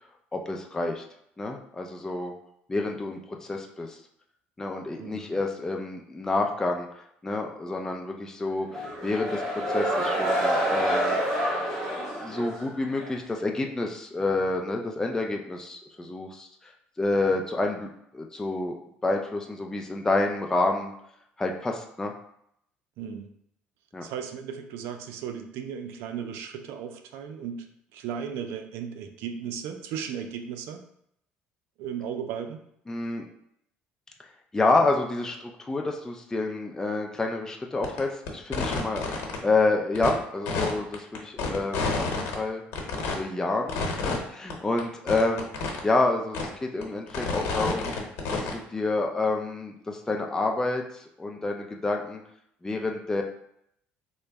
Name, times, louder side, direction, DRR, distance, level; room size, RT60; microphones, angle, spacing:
voice 1, 0.3-1.0 1.4-2.3 2.7-4.0 4.6-6.9 7.2-11.2 11.9-16.7 17.0-17.9 18.1-18.8 19.0-20.9 21.4-22.1 23.9-24.0 32.9-33.3 34.5-39.0 39.4-42.6 43.1-45.5 45.8-47.9 48.3-52.2 52.6-53.2, left 2 dB, 15° left, 1 dB, 0.4 m, -28 dB
voice 2, 5.0-5.3 23.0-23.3 24.0-27.7 27.9-30.8 31.8-32.6, right 7 dB, 80° right, 6 dB, 0.4 m, -36 dB
sound 1, 8.7-13.2, right 1 dB, 5° right, 1.4 m, -27 dB
sound 2, 37.8-38.0 38.3-39.4 40.0-40.1 40.5-42.3 42.7-43.1 43.7-44.2 44.5-44.6 44.8-44.9 45.1-45.8 46.3-46.4 46.8-48.6, left 4 dB, 75° left, 0.9 m, -29 dB
3.7 x 2.1 x 3.4 m, 0.73 s
cardioid pair, 105°, 4 cm